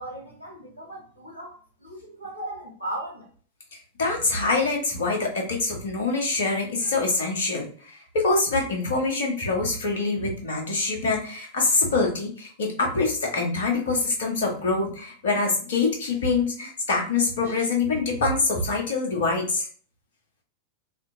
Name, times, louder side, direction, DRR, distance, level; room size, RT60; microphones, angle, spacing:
voice 1, 0.0-3.3, right 1 dB, 85° left, 1.2 m, -38 dB
voice 2, 4.0-19.7, left 3 dB, 60° left, 0.9 m, -25 dB
2.7 x 2.6 x 2.6 m
figure-of-eight pair, 90°, 0 cm